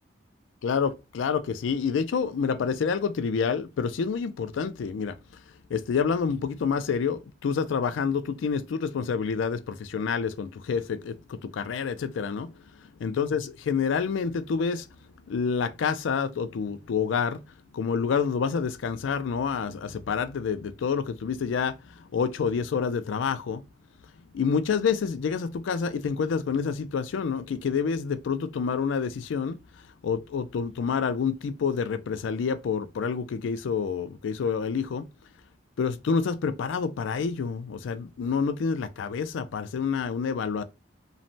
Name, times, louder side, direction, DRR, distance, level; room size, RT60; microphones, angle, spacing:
voice 1, 0.6-5.2 5.7-12.5 13.0-14.9 15.3-17.4 17.7-21.8 22.1-23.6 24.3-29.6 30.0-35.0 35.8-40.6, left 6 dB, 80° left, 0.4 m, -28 dB
3.1 x 2.1 x 2.5 m
head